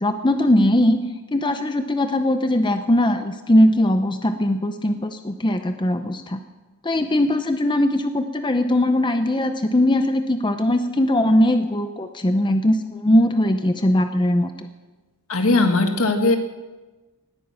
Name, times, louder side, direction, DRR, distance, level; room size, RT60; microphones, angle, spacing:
voice 1, 0.0-1.1 1.3-6.4 6.8-14.5, left 1 dB, 20° left, 8 dB, 0.7 m, -20 dB
voice 2, 15.3-16.4, left 2 dB, 70° left, 6 dB, 1.7 m, -18 dB
19.0 x 9.1 x 7.1 m, 1.2 s
head